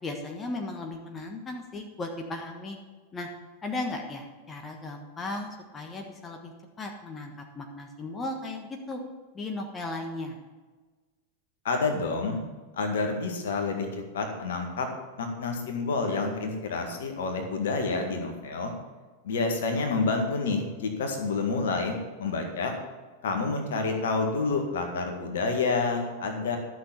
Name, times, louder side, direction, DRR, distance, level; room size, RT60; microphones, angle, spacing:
voice 1, 0.0-2.8 3.1-3.3 3.6-6.5 6.8-9.0 9.3-10.4, left 2 dB, 20° left, 3 dB, 1.4 m, -36 dB
voice 2, 11.6-12.4 12.8-14.9 15.2-18.7 19.2-22.7 23.2-26.6, left 4 dB, 60° left, 4 dB, 1.8 m, -28 dB
12.5 x 6.4 x 7.0 m, 1.3 s
figure-of-eight pair, 90°, 0 cm